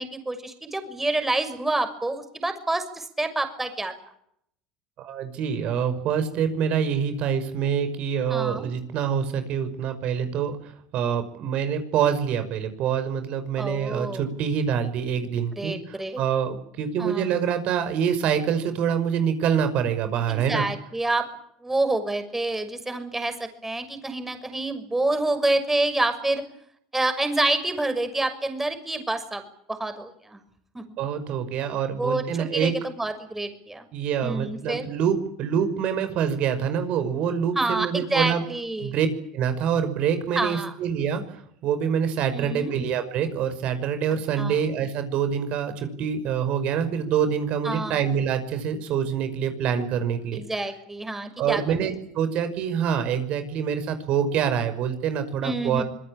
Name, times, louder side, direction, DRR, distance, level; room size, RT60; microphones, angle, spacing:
voice 1, 0.0-3.9 8.3-8.7 13.6-14.2 15.6-16.2 17.0-17.3 20.3-21.3 21.6-26.4 26.9-29.4 29.7-30.4 30.7-30.8 32.0-32.3 32.5-33.9 34.2-34.9 37.5-38.9 40.3-40.7 42.3-42.7 44.4-44.6 47.6-48.0 50.3-51.6 55.4-55.8, right 2 dB, 10° right, 9 dB, 6.4 m, -27 dB
voice 2, 5.0-20.7 31.0-32.7 33.9-38.4 38.8-39.1 39.3-50.4 51.4-55.8, right 8 dB, 55° right, 10 dB, 5.6 m, -26 dB
26.0 x 22.0 x 8.8 m, 0.70 s
hypercardioid pair, 85°, 2 cm